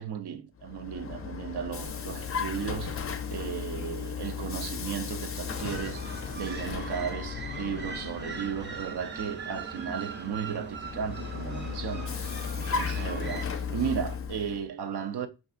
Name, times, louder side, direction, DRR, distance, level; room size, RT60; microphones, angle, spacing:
voice 1, 0.0-15.3, right 7 dB, 90° right, 0.6 m, -35 dB
Vehicle, 0.6-9.1 10.8-14.6, left 6 dB, 35° left, 0.4 m, -35 dB
sound 1, 5.5-13.5, right 4 dB, 30° right, 0.6 m, -40 dB
5.3 x 2.6 x 2.4 m
wide cardioid pair, 115°, 38 cm